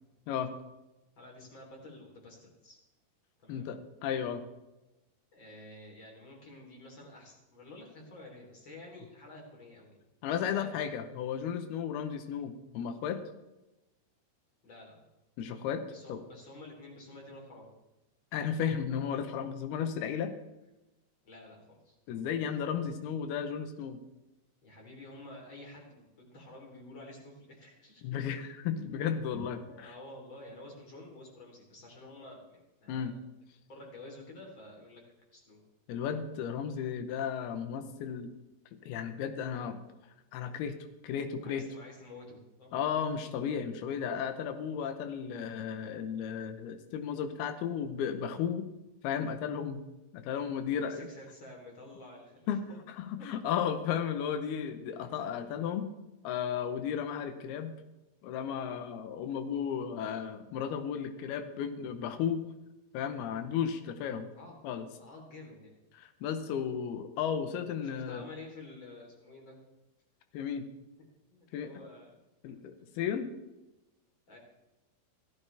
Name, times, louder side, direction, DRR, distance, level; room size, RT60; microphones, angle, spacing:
voice 1, 1.2-2.8 3.4-3.7 5.3-10.0 10.5-10.9 14.6-15.1 15.9-17.7 21.2-22.0 24.6-28.2 29.3-33.2 33.7-35.6 41.4-42.7 50.6-52.8 53.2-53.3 60.0-60.2 64.3-64.6 65.0-65.8 67.8-69.6 71.3-72.2 74.3-74.4, left 2 dB, 30° left, 0 dB, 3.8 m, -50 dB
voice 2, 3.5-4.4 10.2-13.2 15.4-15.8 16.1-16.2 18.3-20.3 22.1-24.0 28.0-29.9 32.9-33.2 35.9-38.3 38.8-39.8 40.3-40.8 41.0-41.7 42.7-48.7 49.0-49.8 50.1-51.1 52.5-52.6 53.0-55.9 56.2-57.7 58.2-62.4 62.9-64.3 64.6-64.9 66.0-68.2 70.3-70.7 71.5-71.7 72.4-73.3, left 8 dB, 90° left, 9 dB, 2.9 m, -34 dB
15.5 x 14.5 x 3.4 m, 1.0 s
omnidirectional pair, 4.3 m